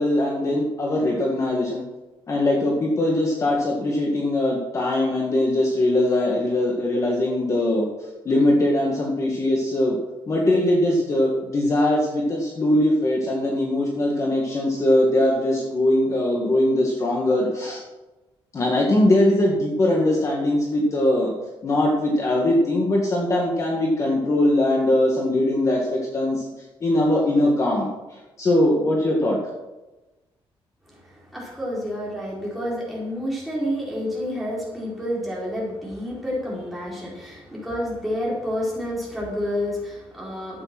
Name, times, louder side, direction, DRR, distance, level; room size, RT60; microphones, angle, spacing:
voice 1, 0.0-1.8 2.3-7.9 8.3-10.0 10.3-17.8 18.5-21.3 21.6-26.5 26.8-29.4, left 1 dB, 30° left, -1 dB, 1.9 m, -21 dB
voice 2, 30.8-40.6, equal, ahead, -5 dB, 4.7 m, -29 dB
12.5 x 8.9 x 6.1 m, 1.1 s
cardioid pair, 165°, 10 cm